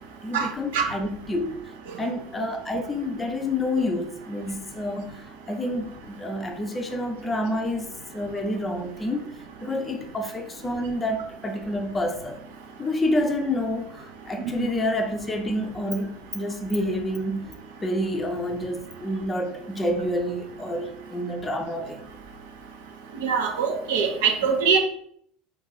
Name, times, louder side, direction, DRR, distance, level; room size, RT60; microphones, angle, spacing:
voice 1, 0.2-1.6 2.0-9.3 9.6-12.4 12.8-17.4 17.8-22.0, left 1 dB, 20° left, 0.5 m, -28 dB
voice 2, 23.2-24.8, right 6 dB, 65° right, 0.5 m, -22 dB
2.5 x 2.3 x 3.8 m
figure-of-eight pair, 70°, 0 cm